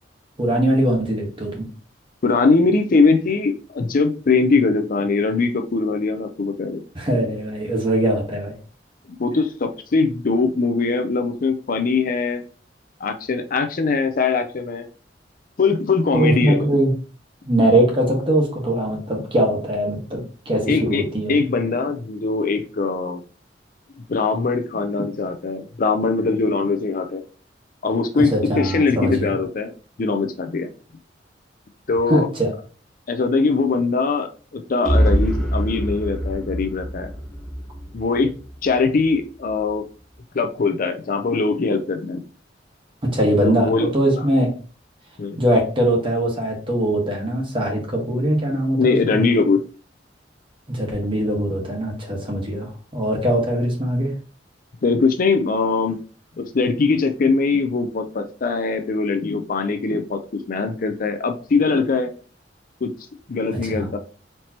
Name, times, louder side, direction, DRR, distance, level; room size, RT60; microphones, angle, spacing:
voice 1, 0.4-1.6 6.9-8.5 16.1-16.9 17.5-21.4 28.3-29.3 32.1-32.5 43.1-44.5 45.4-49.2 50.7-54.1 63.5-63.9, right 1 dB, 30° right, 0 dB, 1.4 m, -21 dB
voice 2, 2.2-6.8 9.2-12.4 13.0-14.9 15.6-16.7 20.6-23.2 24.1-27.2 27.8-29.7 30.0-30.7 31.9-32.3 33.1-37.1 37.9-38.3 38.6-39.8 40.3-42.2 43.4-43.9 45.2-45.4 48.8-49.6 54.8-56.0 56.4-62.1 62.8-62.9 63.3-64.0, left 4 dB, 50° left, 7 dB, 0.5 m, -21 dB
sound 1, 34.8-38.7, equal, 5° left, 1.1 m, -23 dB
4.3 x 3.2 x 2.9 m, 0.37 s
head